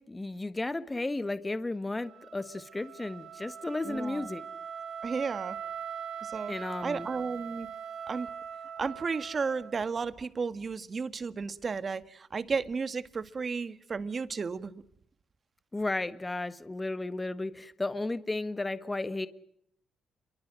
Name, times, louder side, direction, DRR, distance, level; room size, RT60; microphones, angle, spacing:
voice 1, 0.0-4.5 6.5-7.1 15.7-19.3, left 2 dB, 15° left, 1.5 m, -34 dB
Wind instrument woodwind instrument, 2.0-10.0, right 8 dB, 70° right, 2.6 m, -42 dB
voice 2, 3.8-4.3 5.0-5.6 6.2-6.5 6.8-7.7 8.1-8.3 8.8-14.8, right 5 dB, 40° right, 1.7 m, -33 dB
29.0 x 23.0 x 7.7 m
cardioid pair, 90°, 0 cm